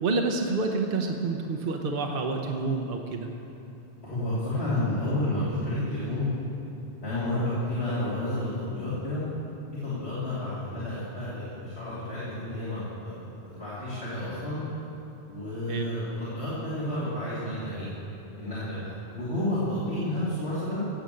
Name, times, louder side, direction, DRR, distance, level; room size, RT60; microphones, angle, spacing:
voice 1, 0.0-3.3 15.7-15.9, right 3 dB, 60° right, 3 dB, 1.0 m, -28 dB
voice 2, 4.0-6.3 7.0-9.2 9.8-14.6 15.3-17.9 18.4-20.9, left 1 dB, 80° left, -11 dB, 3.3 m, -31 dB
17.0 x 6.9 x 7.7 m, 2.9 s
omnidirectional pair, 1.1 m